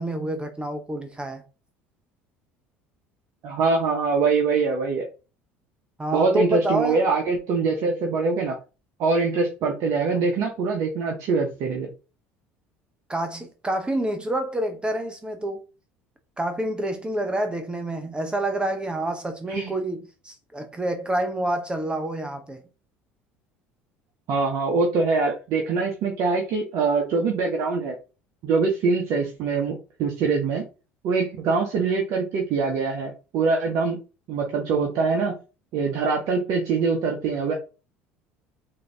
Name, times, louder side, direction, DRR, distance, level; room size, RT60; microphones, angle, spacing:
voice 1, 0.0-1.4 6.0-7.0 13.1-15.6 16.4-22.6, right 1 dB, 15° right, 0.7 m, -28 dB
voice 2, 3.4-5.1 6.1-8.6 9.0-11.9 19.5-19.7 24.3-28.0 28.4-30.6 31.0-34.0 34.3-35.3 35.7-37.5, right 4 dB, 55° right, 0.8 m, -23 dB
3.8 x 2.7 x 3.4 m
hypercardioid pair, 65°, 6 cm